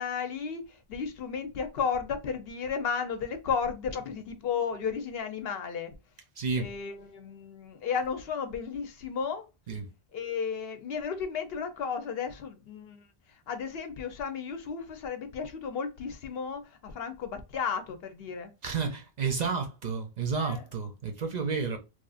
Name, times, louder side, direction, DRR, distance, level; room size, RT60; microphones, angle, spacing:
voice 1, 0.0-5.9 6.6-9.5 10.1-13.1 13.5-18.5 20.4-20.6, left 6 dB, 75° left, 0.8 m, -33 dB
voice 2, 6.4-6.7 9.7-9.9 18.6-21.8, right 5 dB, 50° right, 0.6 m, -31 dB
3.1 x 2.4 x 2.4 m
omnidirectional pair, 1.0 m